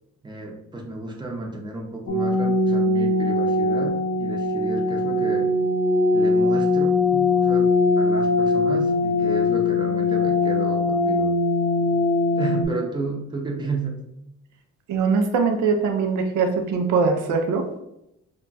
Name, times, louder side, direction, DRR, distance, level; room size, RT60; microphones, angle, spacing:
voice 1, 0.2-5.5 6.1-7.7 8.0-11.3 12.4-14.0, right 2 dB, 15° right, 0 dB, 0.6 m, -32 dB
sound 1, 2.1-12.7, left 2 dB, 45° left, 0.5 m, -21 dB
voice 2, 14.9-17.7, right 5 dB, 80° right, 4 dB, 0.5 m, -22 dB
2.3 x 2.1 x 3.9 m, 0.84 s
cardioid pair, 90°, 30 cm